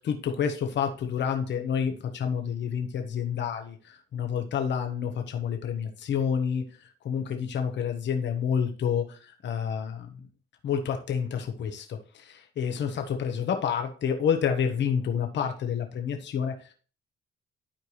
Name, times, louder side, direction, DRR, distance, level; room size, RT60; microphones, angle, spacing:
voice 1, 0.0-10.3 10.6-16.7, left 7 dB, 65° left, 5 dB, 1.3 m, -29 dB
11.5 x 4.6 x 3.1 m, 0.37 s
cardioid pair, 90°, 20 cm